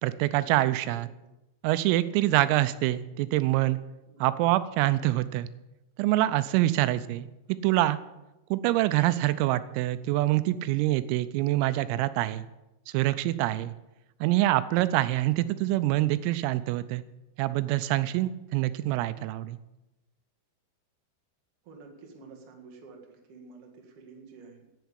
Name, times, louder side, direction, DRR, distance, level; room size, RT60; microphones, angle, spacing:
voice 1, 0.0-1.1 1.6-3.8 4.2-5.5 6.0-7.3 7.6-8.0 8.5-12.5 12.9-13.7 14.2-17.0 17.4-19.6, right 15 dB, 85° right, 14 dB, 3.3 m, -25 dB
voice 2, 6.6-6.9 21.6-24.7, right 4 dB, 50° right, 2 dB, 1.8 m, -50 dB
10.5 x 9.2 x 8.2 m, 0.98 s
omnidirectional pair, 5.9 m